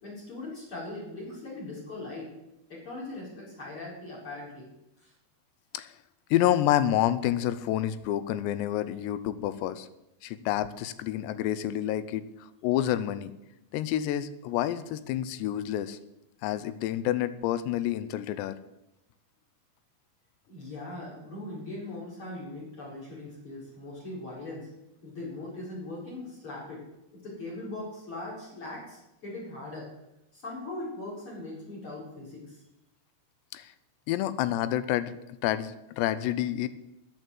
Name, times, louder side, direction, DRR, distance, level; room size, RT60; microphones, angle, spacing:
voice 1, 0.0-2.3 2.7-4.7 5.0-5.1 20.5-24.7 25.0-26.8 27.1-29.9 30.3-32.6, left 2 dB, 30° left, -4 dB, 5.0 m, -40 dB
voice 2, 6.3-9.9 10.2-12.3 12.6-13.3 13.7-16.0 16.4-18.6 33.5-33.7 34.1-35.2 35.4-36.7, left 12 dB, 90° left, 14 dB, 2.9 m, -28 dB
9.9 x 9.4 x 7.8 m, 0.89 s
omnidirectional pair, 4.9 m